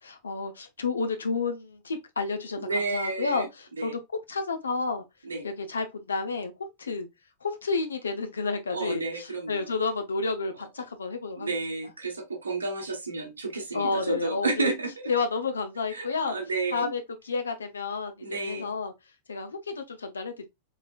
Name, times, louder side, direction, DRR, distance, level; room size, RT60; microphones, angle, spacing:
voice 1, 0.0-5.0 5.4-7.1 7.4-11.5 13.7-14.7 15.1-16.4 16.7-18.9 19.3-20.5, left 4 dB, 70° left, 0.7 m, -31 dB
voice 2, 2.6-3.9 5.2-5.4 8.7-9.7 11.3-15.1 15.9-16.9 18.2-18.7, right 3 dB, 75° right, 1.1 m, -31 dB
3.7 x 3.2 x 2.3 m
figure-of-eight pair, 90°, 0 cm